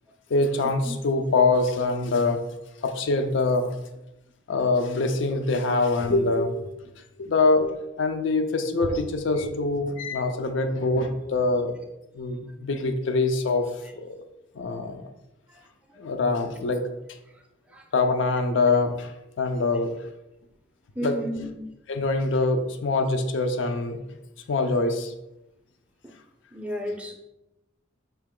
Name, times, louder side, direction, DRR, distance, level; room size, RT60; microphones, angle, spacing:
voice 1, 0.3-2.4 2.8-3.7 4.5-6.7 7.2-11.7 12.1-13.7 14.0-14.2 14.6-15.0 16.0-16.8 17.9-19.1 19.4-19.9 21.0-21.4 21.9-24.0 24.5-25.1, left 3 dB, 70° left, 6 dB, 0.5 m, -24 dB
voice 2, 21.0-21.6 26.5-27.1, equal, 5° right, 1 dB, 0.5 m, -32 dB
4.5 x 2.9 x 3.7 m, 0.91 s
head